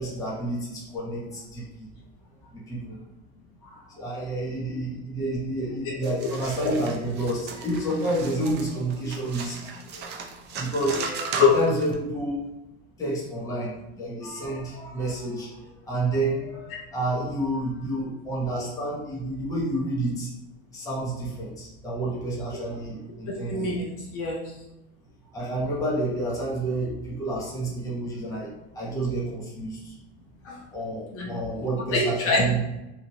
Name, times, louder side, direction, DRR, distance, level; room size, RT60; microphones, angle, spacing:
voice 1, 0.0-1.9 2.5-3.0 3.6-10.1 10.6-11.0 11.4-12.4 13.0-13.7 14.0-15.6 15.8-20.3 20.7-23.7 25.3-28.5 28.7-29.9 30.7-32.6, right 1 dB, 10° left, -7 dB, 0.9 m, -29 dB
sound 1, 6.0-11.9, right 5 dB, 30° right, 0.4 m, -37 dB
voice 2, 11.0-11.5 23.5-24.4 30.4-30.6 31.1-31.3 31.6-32.4, left 4 dB, 40° left, -2 dB, 0.6 m, -25 dB
3.0 x 2.5 x 2.8 m, 0.96 s
supercardioid pair, 125°, 34 cm